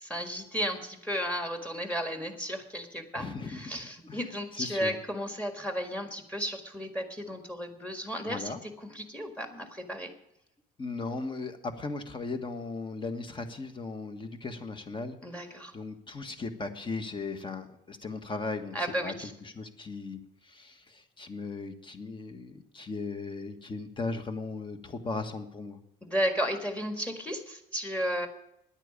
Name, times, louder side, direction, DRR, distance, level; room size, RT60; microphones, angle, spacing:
voice 1, 0.0-10.1 15.2-15.7 18.7-19.3 26.0-28.3, equal, 10° left, 6 dB, 1.7 m, -34 dB
voice 2, 3.1-3.6 4.0-4.2 4.5-4.9 8.3-8.6 10.8-19.1 19.4-25.8, left 3 dB, 30° left, 7 dB, 1.5 m, -37 dB
10.0 x 9.0 x 8.5 m, 0.80 s
cardioid pair, 110°, 17 cm